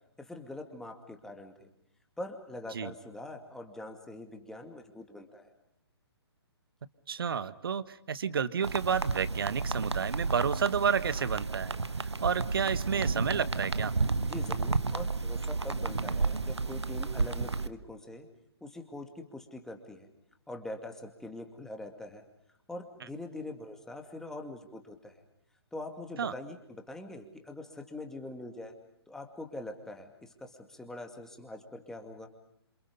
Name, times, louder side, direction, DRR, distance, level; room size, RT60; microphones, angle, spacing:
voice 1, 0.2-1.7 2.2-5.5 14.2-18.3 18.6-20.1 20.5-22.2 22.7-25.2 25.7-28.7 29.1-32.3, left 2 dB, 5° left, 4 dB, 2.3 m, -43 dB
voice 2, 7.1-13.9 26.2-26.3, right 7 dB, 55° right, 15 dB, 1.3 m, -31 dB
sound 1, 8.6-17.7, right 3 dB, 80° right, 1.1 m, -32 dB
27.5 x 27.5 x 5.3 m, 0.73 s
figure-of-eight pair, 130°, 14 cm